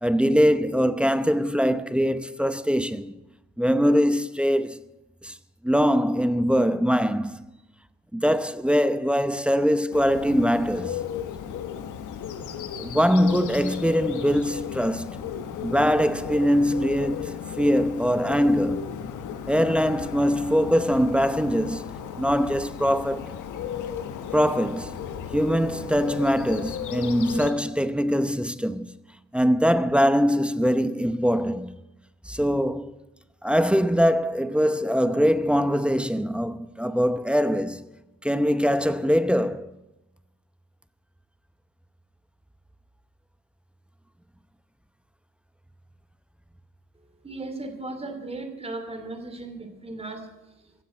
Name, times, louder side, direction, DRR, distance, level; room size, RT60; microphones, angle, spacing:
voice 1, 0.0-3.2 3.6-4.8 5.2-5.3 5.6-7.4 8.1-11.0 12.8-15.1 15.6-18.9 19.5-21.8 22.2-23.4 24.3-25.0 25.3-28.9 29.3-31.7 32.3-32.9 33.4-37.8 38.2-39.7, equal, 5° right, 0.8 m, -22 dB
Bird, 9.9-27.5, left 8 dB, 80° left, 1.5 m, -35 dB
voice 2, 46.9-50.7, right 2 dB, 20° right, 2.7 m, -37 dB
15.5 x 7.5 x 9.9 m
cardioid pair, 90°, 30 cm